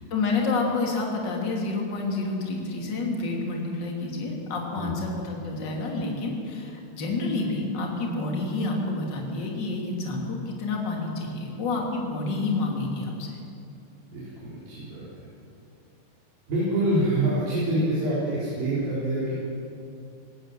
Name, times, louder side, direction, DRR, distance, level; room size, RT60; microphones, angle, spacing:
voice 1, 0.1-13.4, left 3 dB, 30° left, -1 dB, 3.0 m, -29 dB
voice 2, 14.1-15.3 16.5-19.4, right 1 dB, 60° right, -8 dB, 6.1 m, -26 dB
19.0 x 18.5 x 7.7 m, 2.6 s
omnidirectional pair, 4.8 m